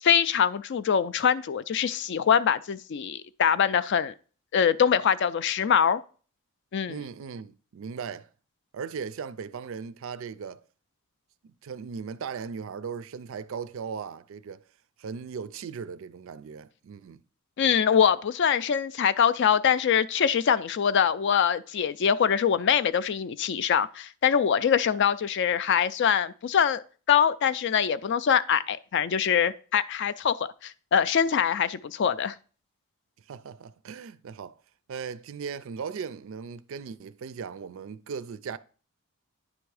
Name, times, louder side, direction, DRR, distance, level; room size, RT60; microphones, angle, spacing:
voice 1, 0.0-4.1 4.5-6.0 6.7-7.0 17.6-26.8 27.1-32.3, left 8 dB, 55° left, 0.3 m, -24 dB
voice 2, 6.9-8.3 8.7-10.6 11.4-14.6 15.0-17.2 33.3-34.6 34.9-38.6, right 6 dB, 60° right, 0.4 m, -38 dB
9.8 x 3.5 x 4.8 m
head